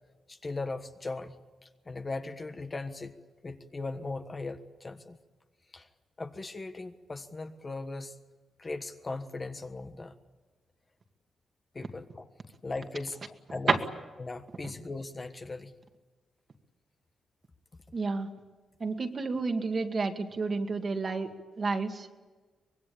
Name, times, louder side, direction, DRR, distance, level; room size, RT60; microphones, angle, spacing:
voice 1, 0.3-3.2 3.4-5.2 5.7-5.9 6.2-8.1 8.6-10.1 11.7-12.3 12.6-13.2 13.5-13.8 14.2-15.7, left 3 dB, 25° left, 7 dB, 1.4 m, -38 dB
voice 2, 17.9-18.3 18.8-21.3 21.6-22.2, right 4 dB, 35° right, 5 dB, 2.1 m, -30 dB
24.5 x 22.0 x 8.7 m, 1.3 s
wide cardioid pair, 145°, 0 cm